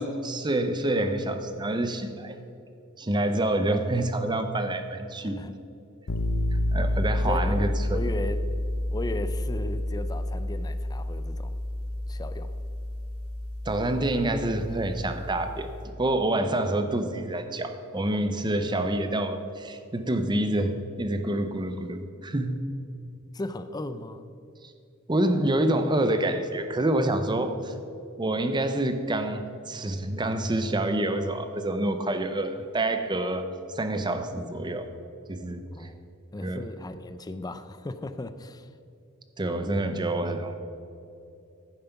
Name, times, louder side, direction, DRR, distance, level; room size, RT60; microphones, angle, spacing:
voice 1, 0.0-2.4 3.0-5.4 6.7-8.0 13.7-15.7 16.0-22.6 25.1-27.7 28.2-34.9 35.3-35.6 36.4-36.7 39.4-40.5, right 1 dB, 20° right, 8 dB, 0.7 m, -27 dB
voice 2, 5.2-5.5 7.3-8.4 8.9-11.6 12.1-12.5 23.3-24.3 35.7-36.1 36.3-38.7, left 2 dB, 20° left, 11 dB, 0.5 m, -36 dB
sound 1, 6.1-15.9, left 1 dB, 85° left, 0.8 m, -30 dB
10.5 x 9.1 x 5.9 m, 2.7 s
head